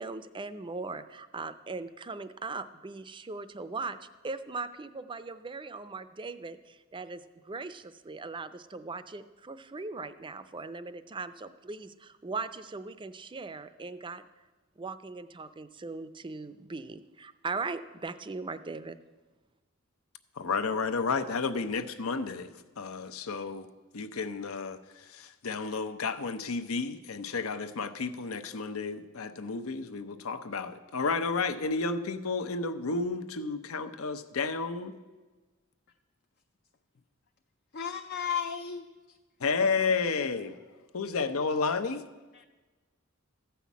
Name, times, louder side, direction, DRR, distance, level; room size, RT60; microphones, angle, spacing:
voice 1, 0.0-4.0 4.2-14.2 14.8-19.0, right 3 dB, 25° right, 13 dB, 0.5 m, -39 dB
voice 2, 20.4-22.5 22.8-23.7 23.9-34.9 39.4-40.6 40.9-42.1, left 4 dB, 80° left, 10 dB, 0.8 m, -31 dB
voice 3, 37.7-38.9 42.3-42.4, left 7 dB, 50° left, 6 dB, 0.5 m, -33 dB
14.5 x 5.8 x 8.3 m, 1.3 s
head